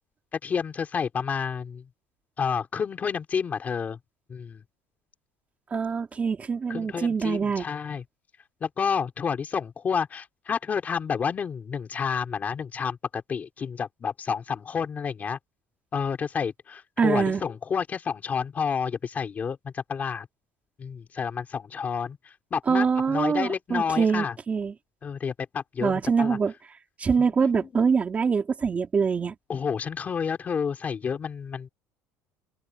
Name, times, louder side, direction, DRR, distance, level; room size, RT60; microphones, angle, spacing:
voice 1, 0.3-1.9 2.4-4.0 4.3-4.6 6.7-8.0 8.6-15.4 15.9-20.3 20.8-24.4 25.0-26.4 27.2-27.7 29.5-31.7, left 6 dB, 25° left, 3.9 m, -30 dB
voice 2, 5.7-7.7 17.0-17.4 22.7-24.7 25.8-26.5 27.0-29.3, right 5 dB, 20° right, 3.9 m, -24 dB
cardioid pair, 160°, 6 cm